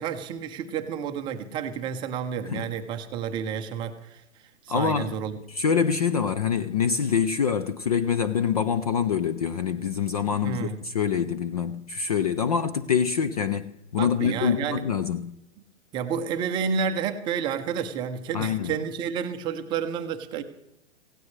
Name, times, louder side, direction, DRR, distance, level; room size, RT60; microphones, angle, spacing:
voice 1, 0.0-4.2 4.6-5.3 10.4-10.8 14.0-14.8 15.9-20.4, right 7 dB, 15° right, 0.6 m, -30 dB
voice 2, 4.7-5.2 5.5-15.3 18.3-18.7, left 7 dB, 35° left, 0.4 m, -25 dB
17.0 x 16.5 x 3.2 m
hypercardioid pair, 145°, 36 cm